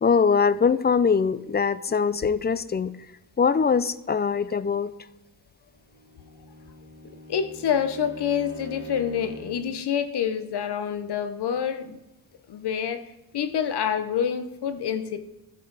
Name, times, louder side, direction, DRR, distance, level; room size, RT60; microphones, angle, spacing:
voice 1, 0.0-2.9 3.4-4.9, left 5 dB, 25° left, 16 dB, 0.4 m, -22 dB
Bowed string instrument, 5.8-9.7, equal, 75° right, 2.5 m, -44 dB
voice 2, 7.3-12.0 12.5-15.2, left 8 dB, 65° left, 11 dB, 0.8 m, -27 dB
13.0 x 7.5 x 4.0 m, 0.99 s
cardioid pair, 80°, 43 cm